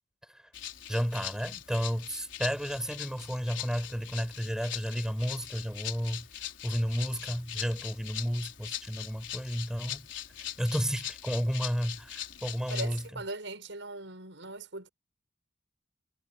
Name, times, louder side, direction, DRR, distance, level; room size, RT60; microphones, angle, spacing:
Rattle (instrument), 0.5-13.1, left 11 dB, 70° left, 4.3 m, -41 dB
voice 1, 0.9-6.3 6.6-10.0 10.6-13.0, equal, 5° right, 5.7 m, -32 dB
voice 2, 12.7-14.9, right 2 dB, 75° right, 6.0 m, -40 dB
head